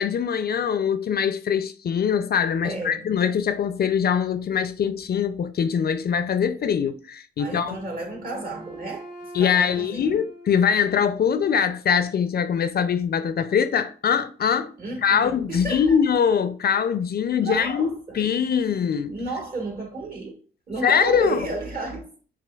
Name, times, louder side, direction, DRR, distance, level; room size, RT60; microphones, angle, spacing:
voice 1, 0.0-7.8 9.3-14.7 15.0-19.2 20.8-21.5, left 7 dB, 50° left, 0.4 m, -23 dB
voice 2, 2.6-3.1 7.4-9.1 9.4-10.2 14.8-16.0 17.4-18.2 19.1-20.4 20.7-22.1, right 3 dB, 45° right, 1.6 m, -32 dB
Wind instrument woodwind instrument, 7.7-11.6, right 1 dB, 20° right, 1.5 m, -43 dB
5.0 x 3.3 x 2.3 m
cardioid pair, 80°, 21 cm